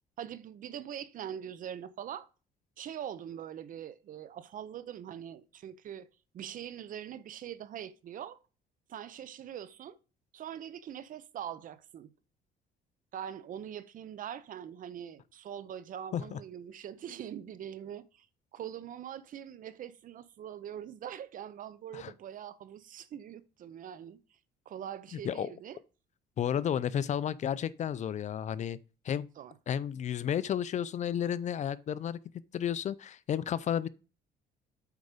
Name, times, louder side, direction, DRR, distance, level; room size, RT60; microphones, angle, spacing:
voice 1, 0.2-2.3 2.8-6.1 6.3-8.4 8.9-10.0 10.3-12.1 13.1-18.3 18.5-24.2 24.7-25.8 29.4-29.5, right 9 dB, 55° right, 0.7 m, -43 dB
voice 2, 26.4-28.8 29.0-29.3 29.7-32.2 32.5-33.9, left 9 dB, 45° left, 0.5 m, -32 dB
8.3 x 4.8 x 5.1 m
cardioid pair, 110°, 17 cm